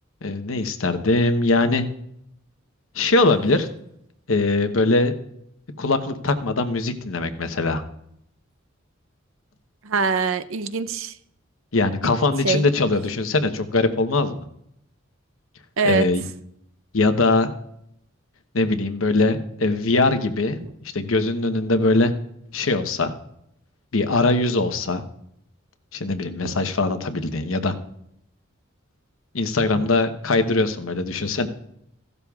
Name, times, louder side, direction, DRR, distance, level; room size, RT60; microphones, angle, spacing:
voice 1, 0.2-1.9 2.9-3.7 4.3-5.1 5.8-7.8 11.7-14.4 15.8-16.2 16.9-17.5 18.5-20.6 20.9-22.1 22.5-23.1 23.9-25.0 25.9-27.7 29.3-31.5, left 2 dB, 75° left, 7 dB, 1.0 m, -21 dB
voice 2, 9.8-11.1 12.4-12.6 15.8-16.1 26.4-26.5 29.8-29.9, right 4 dB, 70° right, 12 dB, 0.6 m, -23 dB
16.0 x 12.0 x 2.4 m, 0.75 s
head